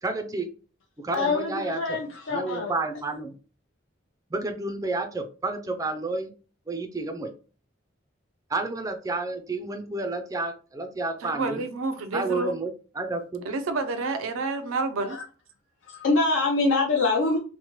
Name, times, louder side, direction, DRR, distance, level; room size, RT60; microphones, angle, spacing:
voice 1, 0.0-0.5 1.0-2.0 2.3-3.4 4.3-6.3 6.7-7.3 8.5-11.6 12.1-13.5, right 3 dB, 15° right, 0.3 m, -30 dB
voice 2, 1.1-2.7 15.1-15.2 15.9-17.4, left 3 dB, 70° left, 0.5 m, -24 dB
voice 3, 11.2-12.6 13.5-15.2, right 3 dB, 90° right, 0.4 m, -29 dB
3.0 x 2.1 x 2.9 m
head